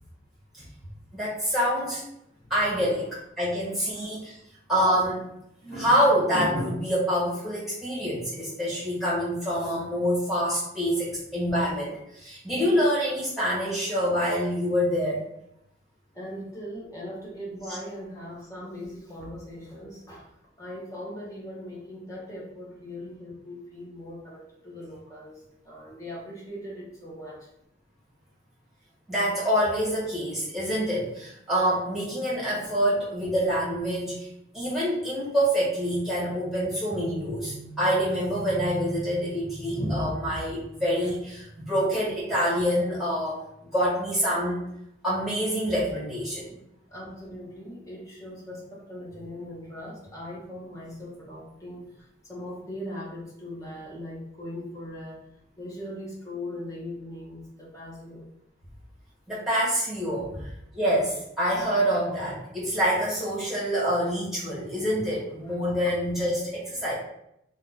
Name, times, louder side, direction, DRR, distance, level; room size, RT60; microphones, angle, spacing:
voice 1, 1.1-2.0 2.5-3.1 3.4-4.3 4.7-5.2 5.6-15.2 29.1-34.3 34.5-43.4 43.7-44.6 45.0-46.6 59.3-60.3 60.7-66.9, equal, ahead, -8 dB, 1.5 m, -26 dB
voice 2, 3.9-4.2 16.1-27.5 46.9-55.3 55.6-58.3 60.2-60.4 65.4-65.6, left 1 dB, 15° left, -5 dB, 0.9 m, -40 dB
2.7 x 2.4 x 4.0 m, 0.78 s
head